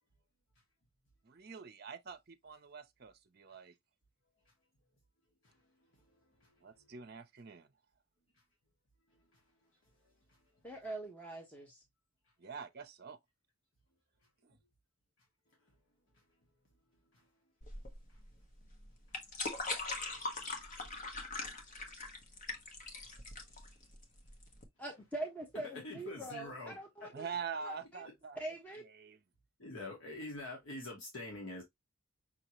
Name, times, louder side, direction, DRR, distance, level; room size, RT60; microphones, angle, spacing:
voice 1, 1.2-3.7 6.6-7.7 12.4-13.2 14.4-14.6 27.1-28.4 28.9-29.2, right 6 dB, 45° right, 0.6 m, -45 dB
voice 2, 6.0-6.5 9.1-9.4 10.3-10.4 14.5-14.6 17.1-17.3 20.1-20.2 25.5-26.7 27.0-27.1 29.6-31.6, left 2 dB, 65° left, 1.4 m, -46 dB
voice 3, 10.6-11.8 24.8-27.3 27.6-28.0 28.4-28.8, right 2 dB, 5° left, 1.0 m, -43 dB
sound 1, 17.6-24.6, left 3 dB, 35° left, 1.0 m, -41 dB
5.7 x 2.9 x 3.0 m
head